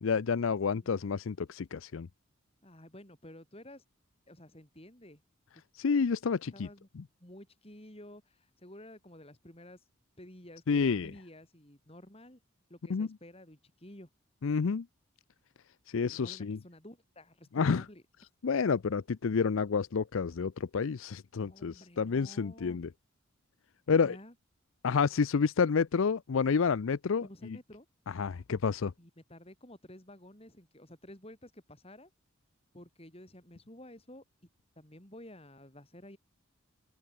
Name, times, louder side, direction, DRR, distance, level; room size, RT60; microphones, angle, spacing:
voice 1, 0.0-2.1 5.7-6.7 7.0-7.1 10.7-11.1 12.9-13.1 14.4-14.9 15.9-16.6 17.5-17.8 18.4-22.9 23.9-24.2 24.8-27.2 28.1-28.9, left 5 dB, 70° left, 0.5 m, -29 dB
voice 2, 2.6-3.8 4.3-5.2 6.5-6.9 7.2-9.8 10.2-12.4 12.7-14.1 16.1-18.0 21.3-22.8 23.9-24.3 27.2-27.9 29.0-32.1 32.7-34.2 34.8-36.2, left 1 dB, 25° left, 3.9 m, -52 dB
open air
head